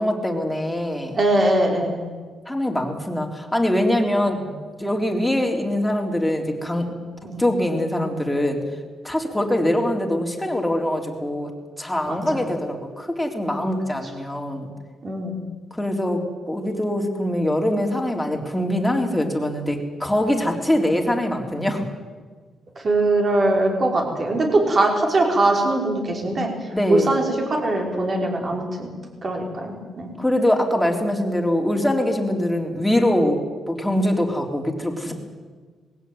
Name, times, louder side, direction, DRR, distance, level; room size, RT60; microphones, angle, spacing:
voice 1, 0.0-1.2 2.5-4.4 4.8-6.9 7.4-8.6 9.0-11.5 11.8-14.7 15.7-16.2 16.5-21.8 26.7-27.1 30.2-33.4 33.7-35.1, left 1 dB, 5° left, 1 dB, 3.8 m, -23 dB
voice 2, 1.1-2.0 4.4-4.5 7.2-7.4 12.0-12.4 15.0-15.4 22.8-26.5 26.9-28.9 29.2-30.1, right 2 dB, 40° right, 1 dB, 5.5 m, -21 dB
20.5 x 16.5 x 9.5 m, 1.5 s
cardioid pair, 105°, 0 cm